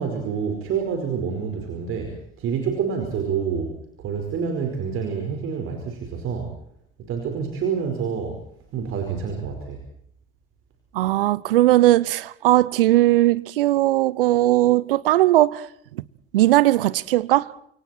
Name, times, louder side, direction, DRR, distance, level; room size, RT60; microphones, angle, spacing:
voice 1, 0.0-6.5 7.0-8.4 8.7-9.8, right 6 dB, 45° right, 5.0 m, -27 dB
voice 2, 10.9-15.7 15.9-16.0 16.3-17.5, right 15 dB, 70° right, 1.0 m, -18 dB
29.0 x 26.5 x 4.5 m
figure-of-eight pair, 65°, 29 cm